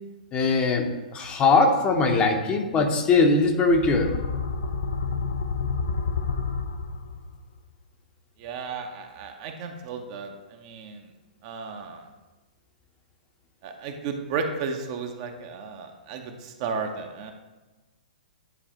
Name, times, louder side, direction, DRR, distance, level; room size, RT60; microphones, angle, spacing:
voice 1, 0.3-4.1, left 3 dB, 20° left, 3 dB, 0.8 m, -21 dB
sound 1, 3.6-7.4, left 5 dB, 65° left, 0.6 m, -29 dB
voice 2, 8.4-11.1 11.4-12.1 13.6-17.3, right 5 dB, 40° right, 4 dB, 0.7 m, -34 dB
9.9 x 3.9 x 3.0 m, 1.2 s
figure-of-eight pair, 115°, 5 cm